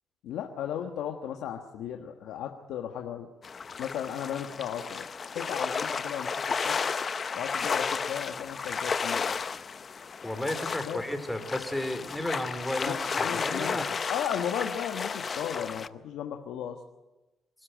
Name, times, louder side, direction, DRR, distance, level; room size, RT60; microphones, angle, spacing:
voice 1, 0.2-3.3 3.8-5.1 5.3-6.3 6.6-6.8 7.3-9.4 10.8-11.0 12.8-16.8, left 9 dB, 85° left, 3 dB, 1.4 m, -35 dB
sound 1, 3.4-15.9, left 5 dB, 40° left, 0.7 m, -33 dB
voice 2, 10.2-13.8, left 1 dB, 5° left, 8 dB, 3.2 m, -33 dB
25.5 x 12.5 x 9.1 m, 1.1 s
cardioid pair, 90°, 0 cm